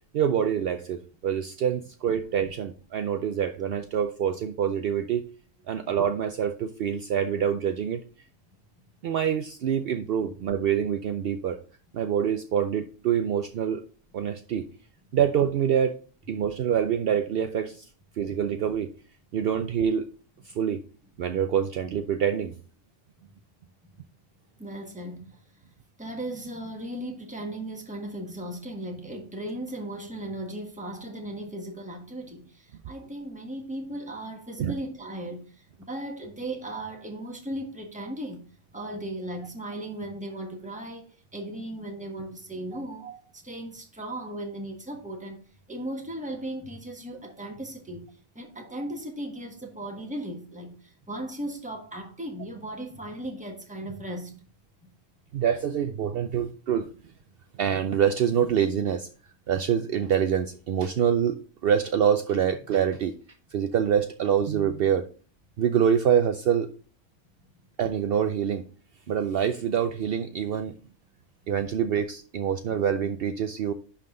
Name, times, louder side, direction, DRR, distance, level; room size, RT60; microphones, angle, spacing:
voice 1, 0.1-5.2 5.7-8.0 9.0-11.6 11.9-13.8 14.1-14.7 15.1-16.0 16.3-17.8 18.2-18.9 19.3-20.1 20.5-20.8 21.2-22.5 34.6-34.7 42.7-42.8 55.3-56.9 57.6-59.1 59.5-63.1 63.5-65.1 65.6-66.7 67.8-68.6 69.1-70.7 71.5-73.7, right 8 dB, 65° right, 0.7 m, -25 dB
voice 2, 24.6-25.4 26.0-38.4 38.7-48.1 48.3-54.4, right 1 dB, 5° right, 1.4 m, -37 dB
11.0 x 3.8 x 3.8 m
omnidirectional pair, 1.2 m